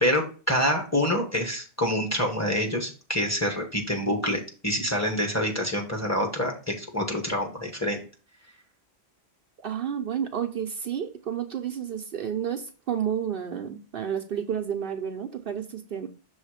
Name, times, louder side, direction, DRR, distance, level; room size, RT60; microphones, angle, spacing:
voice 1, 0.0-8.0, equal, 15° left, 0 dB, 1.3 m, -26 dB
voice 2, 9.6-16.1, right 8 dB, 65° right, 4 dB, 0.8 m, -31 dB
6.4 x 3.5 x 4.9 m, 0.35 s
omnidirectional pair, 1.1 m